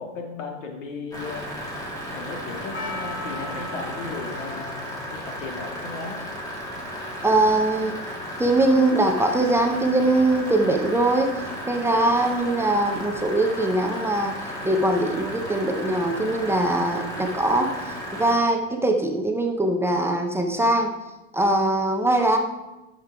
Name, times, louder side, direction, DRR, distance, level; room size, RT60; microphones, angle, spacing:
voice 1, 0.0-1.6 2.1-6.2, left 4 dB, 85° left, 2 dB, 2.2 m, -36 dB
sound 1, 1.1-18.4, equal, 10° left, 2.3 m, -34 dB
Percussion, 2.7-7.7, left 2 dB, 25° left, 1.0 m, -40 dB
voice 2, 7.2-7.9 8.4-11.3 11.7-14.3 14.6-17.7 18.1-20.9 21.3-22.4, right 2 dB, 5° right, 3 dB, 0.6 m, -21 dB
8.4 x 6.8 x 4.7 m, 1.0 s
supercardioid pair, 145°, 37 cm